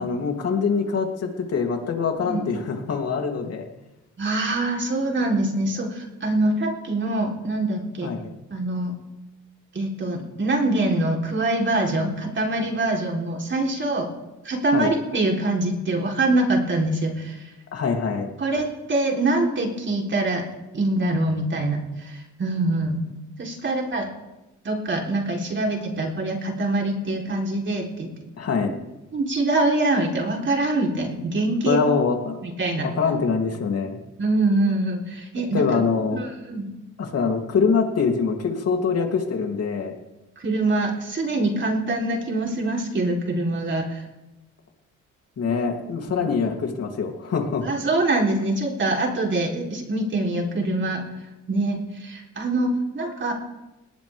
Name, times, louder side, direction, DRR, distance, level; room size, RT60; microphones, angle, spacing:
voice 1, 0.0-3.7 8.0-8.3 14.7-14.9 17.7-18.3 28.4-28.7 31.7-32.4 32.8-34.0 35.5-36.2 37.0-39.9 45.4-47.7, left 5 dB, 55° left, 2 dB, 3.2 m, -24 dB
voice 2, 4.2-8.1 8.5-8.9 9.7-14.1 14.4-17.5 18.4-20.4 20.7-23.0 23.4-24.1 24.6-28.2 29.1-31.8 32.4-32.9 34.2-35.8 36.1-36.7 40.4-44.0 46.1-46.2 47.6-51.0 51.5-53.3, right 2 dB, 40° right, 0 dB, 3.9 m, -24 dB
19.5 x 19.0 x 3.6 m, 1.0 s
cardioid pair, 90°, 30 cm